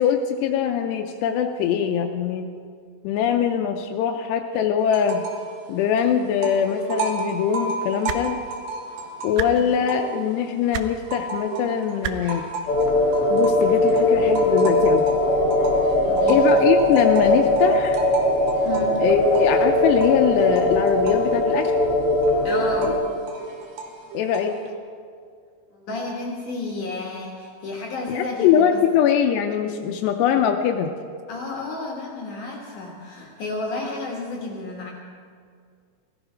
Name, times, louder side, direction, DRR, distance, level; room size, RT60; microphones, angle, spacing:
voice 1, 0.0-2.5 3.0-5.2 5.7-8.4 9.2-12.4 13.3-15.1 16.3-18.1 19.0-21.7 24.1-24.6 28.1-30.9, left 8 dB, 80° left, 4 dB, 2.7 m, -22 dB
sound 1, 4.9-5.5 5.8-10.4 10.8-24.7, right 4 dB, 65° right, 3.1 m, -33 dB
sound 2, 8.0-8.2 9.3-9.5 10.7-10.9 12.0-12.1 13.4-13.5, right 12 dB, 80° right, 2.7 m, -28 dB
sound 3, 12.7-22.9, left 1 dB, 35° left, 2.8 m, -20 dB
voice 2, 16.0-16.5 18.6-19.0 22.4-23.0 25.7-28.8 31.3-34.9, left 2 dB, 60° left, -2 dB, 2.5 m, -32 dB
17.0 x 13.0 x 5.0 m, 2.1 s
omnidirectional pair, 5.0 m